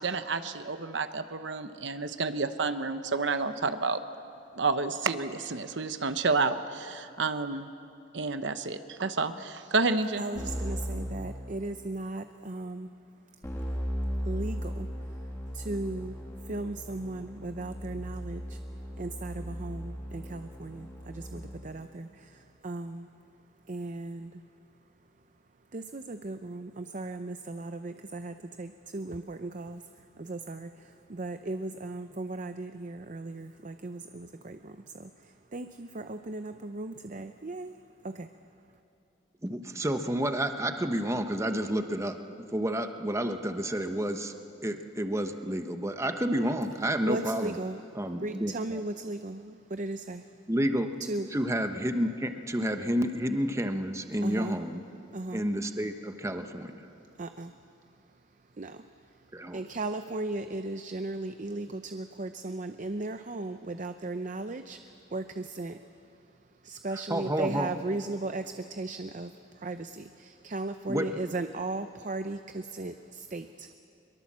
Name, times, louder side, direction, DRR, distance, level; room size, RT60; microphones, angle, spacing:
voice 1, 0.0-4.0 4.6-7.7 8.1-10.2, right 4 dB, 70° right, 10 dB, 1.0 m, -30 dB
voice 2, 10.2-12.9 14.2-15.2 15.5-16.2 16.4-18.6 19.0-23.1 23.7-24.4 25.7-37.8 38.0-38.3 47.0-47.8 48.2-50.2 51.0-51.3 54.2-54.6 55.1-55.4 57.2-57.5 58.6-58.9 59.5-65.8 66.6-73.5, right 2 dB, 40° right, 9 dB, 0.6 m, -37 dB
Keyboard (musical), 10.4-12.0 13.4-21.8, equal, 15° left, 2.5 m, -37 dB
voice 3, 39.4-42.2 42.5-44.3 44.6-47.6 47.9-48.8 50.5-50.9 51.3-54.8 55.3-56.7 59.3-59.6 66.9-67.7 70.9-71.1, equal, 15° right, 7 dB, 1.0 m, -30 dB
23.0 x 22.5 x 7.4 m, 2.6 s
head